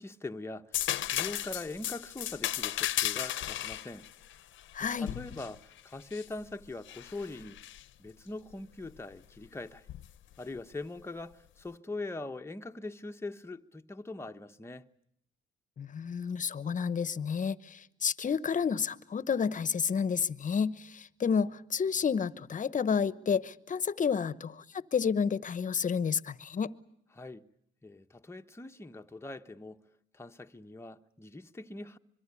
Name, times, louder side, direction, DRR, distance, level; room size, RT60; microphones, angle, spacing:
voice 1, 0.0-4.1 4.8-7.6 8.0-9.9 10.4-14.9 27.1-27.5 27.8-29.8 30.1-32.0, left 2 dB, 15° left, 1.1 m, -42 dB
sound 1, 0.7-6.3 6.9-7.8 9.9-10.1, left 12 dB, 75° left, 0.9 m, -35 dB
voice 2, 4.7-5.1 15.8-26.7, left 6 dB, 40° left, 1.0 m, -30 dB
25.5 x 23.0 x 8.4 m
cardioid pair, 90°, 20 cm